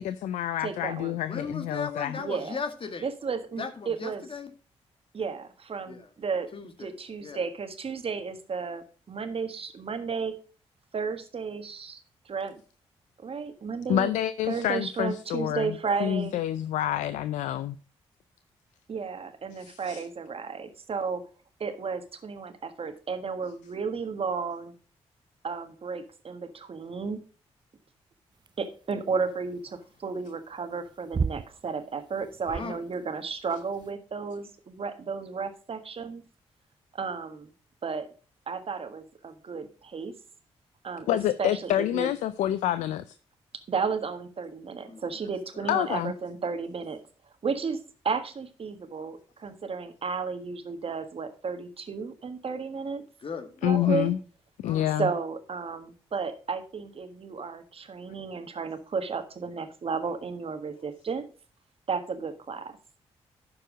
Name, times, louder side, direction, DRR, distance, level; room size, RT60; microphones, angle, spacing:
voice 1, 0.0-2.2 13.9-17.8 19.5-20.0 41.1-43.2 45.7-46.1 53.6-54.2 54.6-55.1, left 12 dB, 85° left, 0.4 m, -28 dB
voice 2, 0.6-1.2 2.2-2.6 3.0-4.2 5.1-6.5 6.8-10.3 10.9-12.6 13.2-14.1 14.5-16.4 18.9-21.2 21.6-24.7 25.4-27.2 28.6-36.2 36.9-37.5 37.8-38.1 38.5-40.1 40.8-41.1 41.4-42.1 43.7-47.0 47.4-47.8 48.0-53.0 53.6-54.1 55.0-61.3 61.9-62.8, right 5 dB, 50° right, 1.6 m, -33 dB
voice 3, 1.3-3.1 3.6-4.5 5.9-6.1 6.5-7.0 7.2-7.4 32.5-32.8 44.9-45.3 45.5-45.8 53.2-53.9 54.6-54.9, left 5 dB, 45° left, 1.8 m, -37 dB
sound 1, 28.4-33.9, right 5 dB, 35° right, 0.5 m, -36 dB
12.0 x 4.8 x 4.9 m
supercardioid pair, 50°, 12 cm